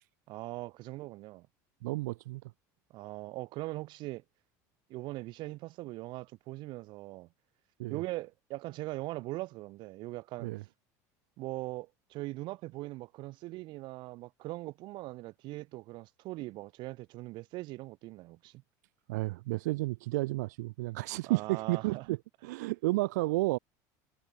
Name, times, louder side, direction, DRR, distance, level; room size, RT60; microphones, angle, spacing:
voice 1, 0.3-1.5 2.9-4.2 4.9-7.3 7.9-10.5 11.4-18.6 21.2-22.1, right 19 dB, 60° right, 1.0 m, -41 dB
voice 2, 1.8-2.4 7.8-8.0 10.4-10.6 19.1-23.6, right 21 dB, 85° right, 0.7 m, -32 dB
supercardioid pair, 110°, 9 cm